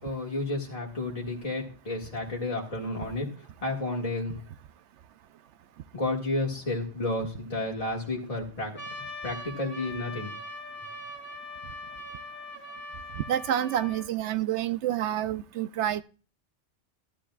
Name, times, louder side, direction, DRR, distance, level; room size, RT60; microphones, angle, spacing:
voice 1, 0.0-3.3 3.6-4.4 5.9-8.8 9.2-10.3, left 2 dB, 30° left, 2.0 m, -31 dB
Trumpet, 8.8-14.1, left 1 dB, 10° left, 1.8 m, -41 dB
voice 2, 13.1-16.0, right 11 dB, 80° right, 0.9 m, -28 dB
13.5 x 12.0 x 2.4 m
omnidirectional pair, 1.2 m